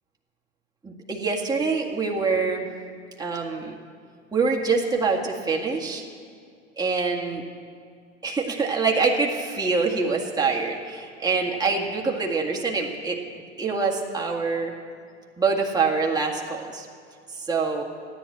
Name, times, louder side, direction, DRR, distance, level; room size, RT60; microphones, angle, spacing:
voice 1, 0.8-2.7 3.2-3.8 4.3-6.1 6.8-7.4 8.2-13.2 13.6-14.7 15.4-16.9 17.4-17.8, right 4 dB, 10° right, -1 dB, 2.0 m, -25 dB
14.0 x 10.5 x 8.6 m, 2.2 s
hypercardioid pair, 95°, 38 cm